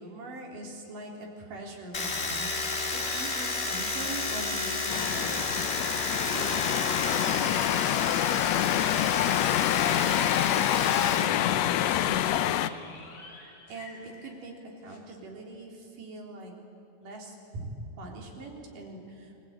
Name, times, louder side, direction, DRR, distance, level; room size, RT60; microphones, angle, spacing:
voice 1, 0.0-5.5 6.1-6.6 7.0-8.4 8.6-9.1 9.7-12.9 13.7-16.5 17.0-17.7 18.0-19.4, right 2 dB, 70° right, 0 dB, 5.3 m, -42 dB
Domestic sounds home sounds, 1.9-11.3 11.5-12.4, left 3 dB, 25° left, 1.6 m, -32 dB
sound 1, 4.9-12.7, left 12 dB, 85° left, 1.5 m, -26 dB
sound 2, 9.8-14.6 14.9-15.0, left 3 dB, 60° left, 4.5 m, -43 dB
29.0 x 21.5 x 9.0 m, 2.9 s
omnidirectional pair, 3.9 m